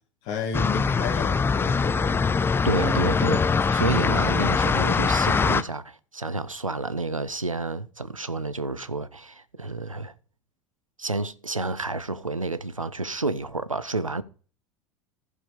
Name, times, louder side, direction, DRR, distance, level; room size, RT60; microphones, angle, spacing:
voice 1, 0.2-2.2 3.3-3.5, left 6 dB, 45° left, 2.2 m, -32 dB
sound 1, 0.5-5.6, left 5 dB, 15° left, 0.5 m, -22 dB
voice 2, 2.6-10.1 11.0-14.2, right 3 dB, 90° right, 0.5 m, -30 dB
14.5 x 4.9 x 5.0 m
figure-of-eight pair, 75°, 16 cm